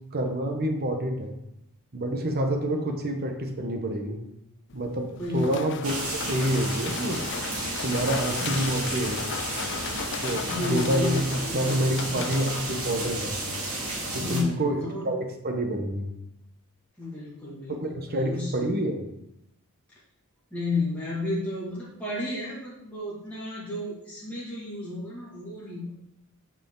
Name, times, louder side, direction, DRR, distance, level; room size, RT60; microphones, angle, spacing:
voice 1, 0.1-1.3 1.9-4.2 4.7-5.9 6.2-7.2 7.8-9.2 10.2-11.2 11.5-13.4 14.3-14.8 15.0-16.1 17.8-19.0, right 1 dB, 45° right, 4 dB, 1.0 m, -27 dB
sound 1, 4.7-13.4, left 8 dB, 55° left, 0.4 m, -37 dB
voice 2, 5.1-6.0 8.4-9.0 10.4-11.6 12.0-12.6 14.1-15.1 17.0-18.5 20.5-25.9, left 2 dB, 5° left, -9 dB, 2.0 m, -33 dB
sound 2, 5.8-14.4, right 2 dB, 75° right, 2.4 m, -32 dB
8.7 x 5.0 x 3.8 m, 0.82 s
head